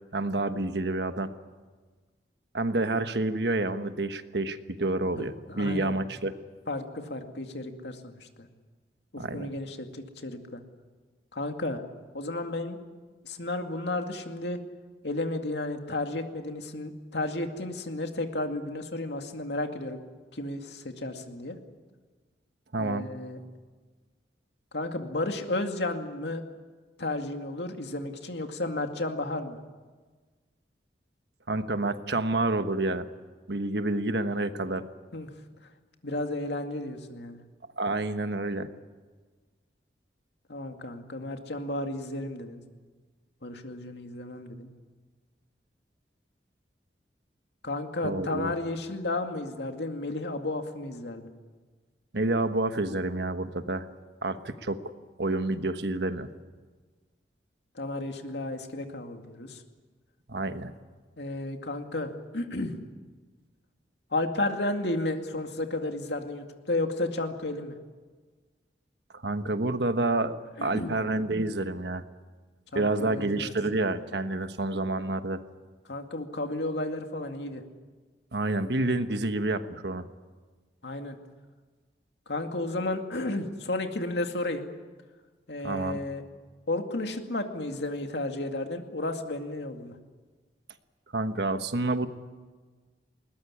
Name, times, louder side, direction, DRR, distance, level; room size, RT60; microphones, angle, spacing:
voice 1, 0.1-1.3 2.5-6.3 9.2-9.5 22.7-23.1 31.5-33.1 33.5-34.9 37.8-38.7 48.0-48.5 52.1-53.9 54.2-54.8 55.2-56.3 60.3-60.7 69.1-70.3 70.6-72.0 72.7-75.4 78.3-80.1 85.6-86.0 91.1-92.1, right 2 dB, 75° right, 9 dB, 1.3 m, -28 dB
voice 2, 5.2-6.0 6.7-8.5 9.1-10.6 11.3-11.8 12.1-12.8 13.2-14.6 15.0-20.0 20.3-21.6 22.8-23.4 24.7-26.4 27.0-29.6 35.1-35.3 36.0-37.4 40.5-42.6 43.4-44.7 47.6-51.3 57.7-59.6 61.2-62.7 64.1-67.8 70.6-70.9 72.7-73.5 75.9-77.6 80.8-81.2 82.3-84.7 85.5-86.2 86.7-89.9, left 2 dB, 75° left, 5 dB, 2.3 m, -33 dB
21.0 x 20.0 x 9.8 m, 1.4 s
head